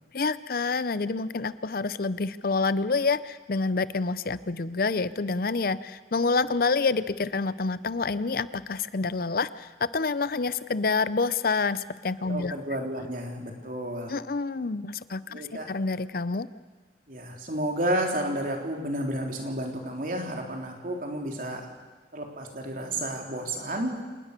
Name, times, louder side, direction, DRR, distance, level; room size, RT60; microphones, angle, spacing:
voice 1, 0.1-12.5 14.1-16.5, left 4 dB, 55° left, 16 dB, 0.6 m, -28 dB
voice 2, 12.3-14.1 15.3-15.7 17.1-21.7 22.1-23.9, right 1 dB, 50° right, 2 dB, 3.6 m, -31 dB
27.0 x 20.0 x 6.8 m, 1.4 s
head